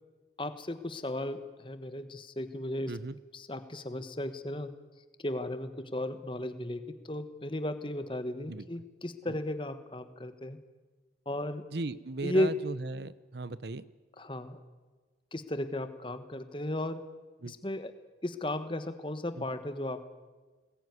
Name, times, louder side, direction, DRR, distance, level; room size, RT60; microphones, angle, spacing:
voice 1, 0.4-3.0 3.3-4.7 5.2-10.6 11.2-11.6 12.2-12.5 14.2-14.6 15.3-17.0 17.5-17.9 18.2-20.0, left 1 dB, 30° left, 10 dB, 1.3 m, -35 dB
voice 2, 2.9-3.2 8.5-8.6 9.3-9.4 11.7-13.9 17.4-17.5 19.4-19.5, right 3 dB, 65° right, 17 dB, 0.8 m, -37 dB
22.5 x 20.0 x 9.6 m, 1.3 s
head